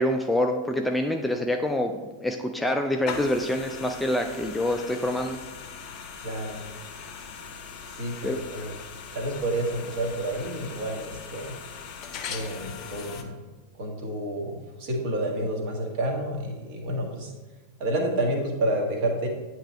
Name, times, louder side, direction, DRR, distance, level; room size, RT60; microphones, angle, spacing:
voice 1, 0.0-5.4 8.2-8.4, left 1 dB, 5° left, 3 dB, 0.4 m, -26 dB
sound 1, 3.1-13.2, left 6 dB, 35° left, 0.7 m, -40 dB
voice 2, 6.2-6.6 8.0-8.7 9.1-11.5 12.3-13.3 13.8-17.3 17.8-19.3, right 1 dB, 45° right, 1 dB, 1.3 m, -29 dB
8.7 x 3.0 x 4.2 m, 1.2 s
figure-of-eight pair, 90°, 0 cm